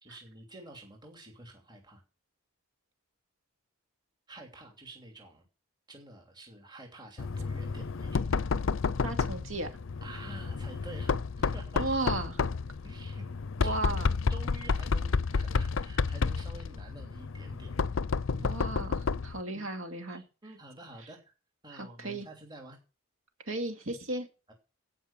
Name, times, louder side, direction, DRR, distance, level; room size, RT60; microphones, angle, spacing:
voice 1, 0.0-2.0 4.3-5.5 5.9-8.3 10.0-11.8 12.8-13.2 13.6-14.0 14.3-17.8 18.4-18.6 19.5-19.6 20.0-21.2 21.6-22.8 24.5-24.6, right 2 dB, 20° right, 2 dB, 2.8 m, -49 dB
Knock, 7.2-19.4, left 4 dB, 65° left, 0.5 m, -31 dB
voice 2, 9.0-9.7 11.8-12.4 13.6-14.1 18.4-20.2 21.7-22.3 23.5-24.3, right 2 dB, 70° right, 7 dB, 2.4 m, -35 dB
16.5 x 5.5 x 7.3 m, 0.34 s
head